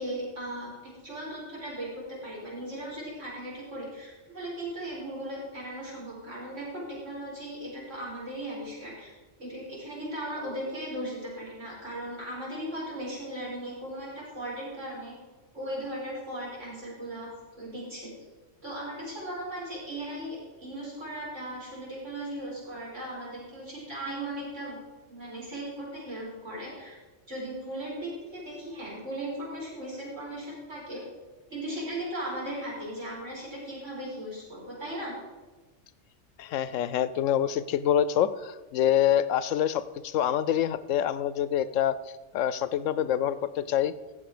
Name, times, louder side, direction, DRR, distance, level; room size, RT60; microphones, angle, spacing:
voice 1, 0.0-9.1 9.4-15.1 15.5-18.1 18.6-24.8 25.1-27.0 27.3-31.0 31.5-35.1, right 1 dB, 70° right, -5 dB, 5.2 m, -37 dB
voice 2, 36.4-42.0 42.3-43.9, left 10 dB, 85° left, 15 dB, 1.0 m, -26 dB
14.0 x 7.8 x 4.9 m, 1.3 s
omnidirectional pair, 1.3 m